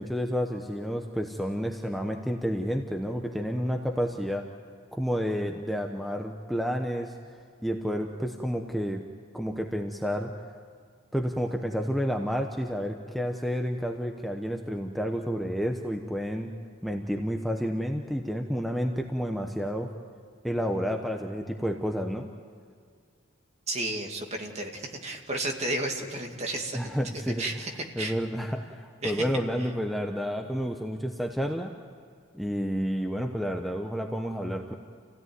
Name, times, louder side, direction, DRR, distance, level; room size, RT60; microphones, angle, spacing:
voice 1, 0.0-4.5 4.9-7.1 7.6-9.0 9.3-10.3 11.1-16.5 16.8-19.9 20.4-22.3 26.7-27.6 28.0-31.7 32.3-34.7, equal, ahead, 2 dB, 0.9 m, -30 dB
voice 2, 23.7-26.8 27.4-27.7 28.0-28.1 29.0-29.2, right 1 dB, 35° right, 2 dB, 2.3 m, -32 dB
28.0 x 17.0 x 9.5 m, 2.1 s
head